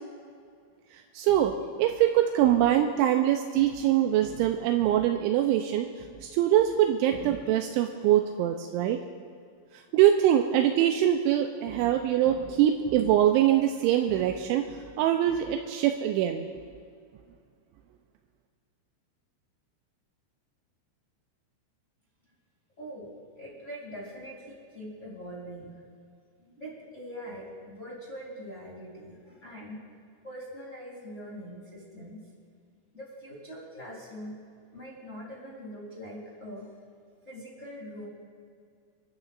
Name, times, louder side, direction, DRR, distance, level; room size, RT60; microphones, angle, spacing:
voice 1, 1.1-5.9 6.2-9.0 9.9-16.5, right 11 dB, 85° right, 4 dB, 2.7 m, -23 dB
voice 2, 22.8-25.7 26.4-29.8 30.2-32.3 32.9-34.3 34.7-36.7 37.2-38.1, equal, 30° left, -4 dB, 1.3 m, -43 dB
28.5 x 12.5 x 2.5 m, 2.2 s
omnidirectional pair, 5.9 m